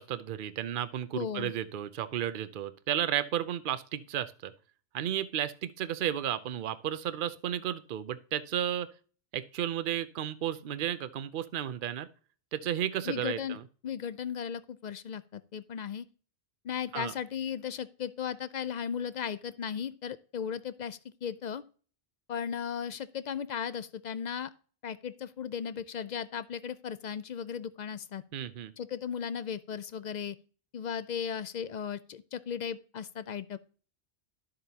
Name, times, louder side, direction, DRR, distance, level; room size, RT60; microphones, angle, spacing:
voice 1, 0.0-4.5 4.9-8.9 9.3-12.1 12.5-13.6 16.9-17.1 28.3-28.7, right 10 dB, 55° right, 13 dB, 0.7 m, -33 dB
voice 2, 1.1-1.5 13.0-13.6 13.8-16.1 16.6-21.6 22.3-24.5 24.8-28.2 28.8-30.4 30.7-33.6, left 7 dB, 60° left, 15 dB, 0.5 m, -36 dB
12.0 x 7.5 x 2.8 m, 0.40 s
omnidirectional pair, 1.2 m